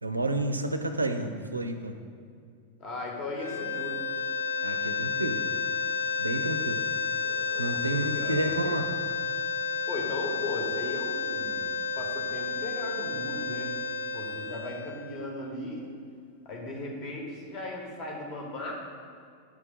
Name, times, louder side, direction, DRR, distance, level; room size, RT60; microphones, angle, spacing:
voice 1, 0.0-1.9 4.6-5.4 6.2-6.8 7.6-8.9, right 2 dB, 80° right, 8 dB, 0.4 m, -30 dB
voice 2, 2.8-4.0 7.2-8.6 9.9-11.7 12.0-13.7 14.1-15.9 16.4-18.7, left 2 dB, 35° left, -1 dB, 1.2 m, -37 dB
sound 1, 3.3-15.6, left 5 dB, 80° left, 0.5 m, -31 dB
9.1 x 3.3 x 3.5 m, 2.2 s
figure-of-eight pair, 90°, 0 cm